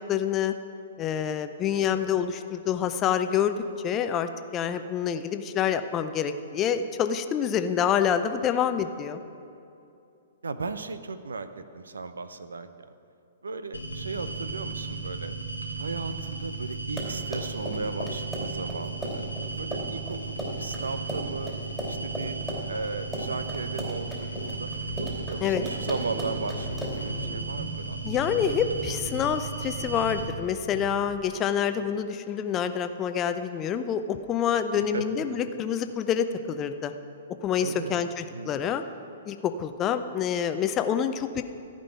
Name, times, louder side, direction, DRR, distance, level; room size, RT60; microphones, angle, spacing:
voice 1, 0.1-0.6 1.0-3.6 3.8-9.2 25.4-25.6 28.0-36.9 37.4-38.8 39.3-41.4, left 8 dB, 25° left, 9 dB, 0.6 m, -27 dB
voice 2, 10.4-12.7 13.4-15.4 15.8-19.2 19.6-21.6 21.9-22.4 22.7-24.7 25.0-28.0 34.8-35.0 35.3-35.4 37.6-38.0 38.3-38.5, right 3 dB, 70° right, 11 dB, 0.7 m, -36 dB
sound 1, 13.7-30.3, right 4 dB, 80° left, 1.4 m, -35 dB
Run, 16.7-27.1, equal, 10° right, 2.8 m, -36 dB
sound 2, 24.8-25.4 25.7-25.8 26.0-31.4, right 1 dB, 30° right, 2.1 m, -40 dB
14.5 x 5.3 x 9.1 m, 2.6 s
figure-of-eight pair, 115°, 0 cm